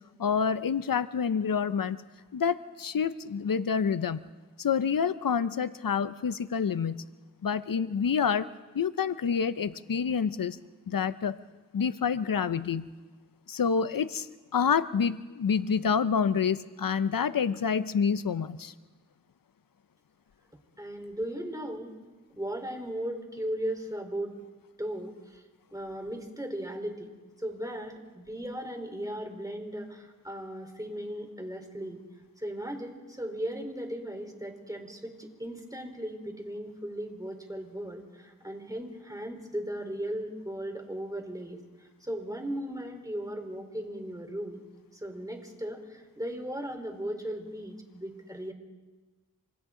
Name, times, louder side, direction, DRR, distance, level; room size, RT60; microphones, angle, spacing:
voice 1, 0.2-2.0 2.3-4.3 4.6-7.0 7.4-8.5 8.7-10.6 10.9-11.4 11.7-12.9 13.5-14.3 14.5-18.7, left 6 dB, 90° left, 14 dB, 0.6 m, -28 dB
voice 2, 20.8-21.9 22.4-24.4 24.8-25.4 25.7-27.1 27.4-32.0 32.4-44.6 44.9-48.5, right 1 dB, 10° right, 3 dB, 3.9 m, -37 dB
26.5 x 26.5 x 3.8 m, 1.3 s
wide cardioid pair, 40°, 33 cm